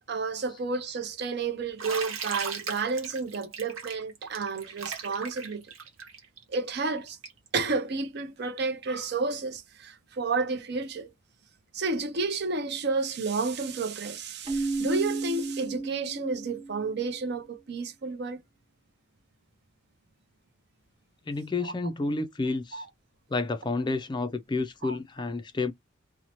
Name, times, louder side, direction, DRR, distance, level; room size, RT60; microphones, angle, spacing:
voice 1, 0.1-5.6 6.5-7.2 7.5-11.1 11.7-18.4 21.6-21.7 22.7-22.9 24.8-25.0, right 4 dB, 55° right, 0.6 m, -31 dB
Bathtub (filling or washing), 1.8-7.5, right 6 dB, 90° right, 0.9 m, -37 dB
Keyboard (musical), 14.5-17.1, right 3 dB, 25° right, 1.0 m, -33 dB
voice 2, 21.3-22.8 23.3-25.7, left 3 dB, 20° left, 0.3 m, -30 dB
2.7 x 2.1 x 2.9 m
head